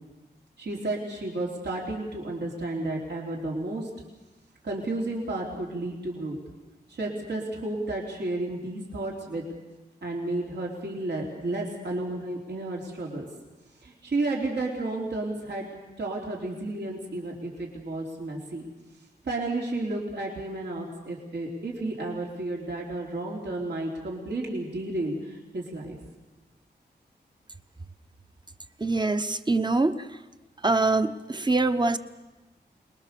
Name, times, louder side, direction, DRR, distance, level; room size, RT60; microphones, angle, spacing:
voice 1, 0.6-3.9 4.6-6.4 6.9-9.4 10.0-13.3 13.8-15.7 16.0-18.7 19.2-26.0, right 2 dB, 75° right, -2 dB, 3.8 m, -32 dB
voice 2, 28.8-30.2 30.6-32.0, right 3 dB, 25° right, 10 dB, 1.0 m, -24 dB
26.5 x 21.5 x 6.9 m, 1.1 s
wide cardioid pair, 115°, 18 cm